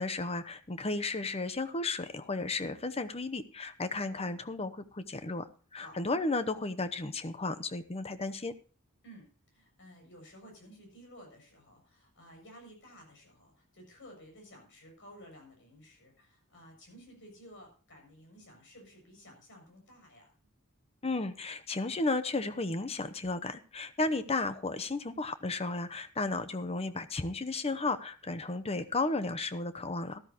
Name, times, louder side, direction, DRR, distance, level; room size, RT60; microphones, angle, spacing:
voice 1, 0.0-8.5 21.0-30.2, left 3 dB, 30° left, 11 dB, 0.9 m, -34 dB
voice 2, 9.0-20.3, equal, 60° left, 1 dB, 7.1 m, -54 dB
13.5 x 13.5 x 3.0 m, 0.37 s
head